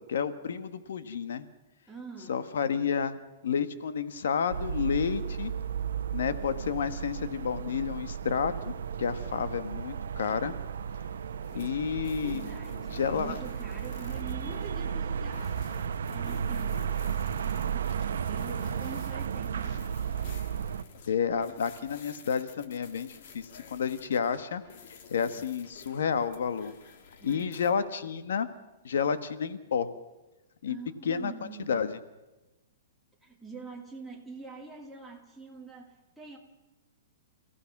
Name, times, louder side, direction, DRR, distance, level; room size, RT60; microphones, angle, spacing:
voice 1, 0.1-1.4 2.3-3.2 3.4-5.5 6.1-8.7 9.0-10.5 11.5-12.4 12.9-13.4 21.1-24.6 24.9-26.7 27.2-28.5 28.8-29.9 30.6-30.8 31.0-31.3 31.7-32.0, left 7 dB, 75° left, 12 dB, 1.4 m, -30 dB
voice 2, 1.9-2.5 11.5-11.8 12.2-16.9 17.4-20.3 27.2-27.7 30.7-31.8 33.2-36.4, right 3 dB, ahead, -2 dB, 2.4 m, -45 dB
sound 1, 4.5-20.8, right 7 dB, 85° right, 0.9 m, -34 dB
sound 2, 11.4-27.7, left 6 dB, 45° left, 2.1 m, -51 dB
28.5 x 16.0 x 6.0 m, 1.1 s
hypercardioid pair, 170°, 0 cm